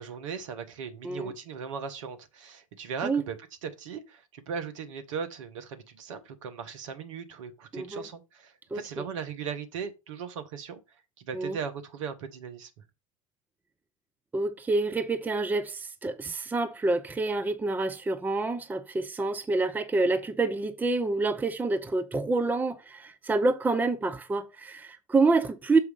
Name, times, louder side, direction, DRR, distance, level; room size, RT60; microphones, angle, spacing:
voice 1, 0.0-3.4 3.6-10.8 11.2-12.7, right 6 dB, 60° right, 1.4 m, -38 dB
voice 2, 7.7-8.0 8.7-9.0 11.3-11.6 14.3-25.8, right 3 dB, 10° right, 0.7 m, -27 dB
7.0 x 4.8 x 5.3 m
figure-of-eight pair, 75°, 18 cm